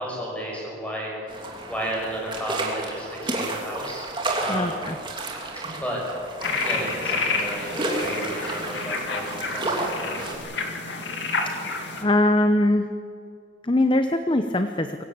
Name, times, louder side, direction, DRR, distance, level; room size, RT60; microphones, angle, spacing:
voice 1, 0.0-4.1 4.4-4.8 5.6-6.0 6.4-10.2, right 1 dB, 5° left, -3 dB, 6.5 m, -33 dB
sound 1, 1.3-10.4, right 2 dB, 25° right, 2.9 m, -31 dB
voice 2, 4.5-5.0 12.0-12.9 13.6-15.0, left 1 dB, 25° left, 8 dB, 0.8 m, -21 dB
sound 2, 6.4-12.0, left 4 dB, 60° left, 2.5 m, -29 dB
23.5 x 16.0 x 8.7 m, 2.6 s
head